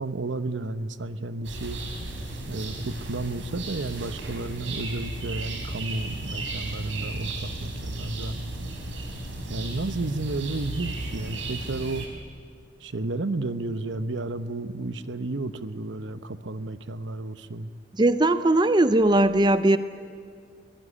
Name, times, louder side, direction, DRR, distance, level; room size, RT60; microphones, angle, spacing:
voice 1, 0.0-1.8 2.5-8.4 9.5-12.0 12.8-17.7, right 2 dB, 70° right, 12 dB, 0.9 m, -32 dB
sound 1, 1.4-12.1, right 2 dB, 85° right, 4.4 m, -34 dB
voice 2, 18.0-19.8, right 1 dB, 25° right, 12 dB, 0.6 m, -19 dB
23.0 x 18.0 x 9.9 m, 2.2 s
head